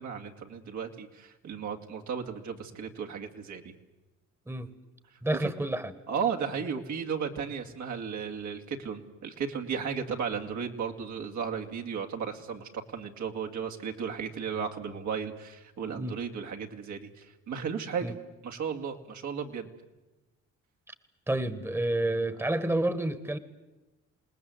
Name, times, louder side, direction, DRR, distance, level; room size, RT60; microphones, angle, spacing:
voice 1, 0.0-3.7 5.3-5.5 6.1-18.1 18.4-19.7, right 6 dB, 75° right, 3 dB, 2.5 m, -35 dB
voice 2, 5.2-5.9 16.0-16.2 18.0-18.1 20.9-21.0 21.3-23.4, right 1 dB, 10° right, 13 dB, 1.4 m, -29 dB
28.0 x 19.0 x 8.0 m, 1.1 s
cardioid pair, 90°, 30 cm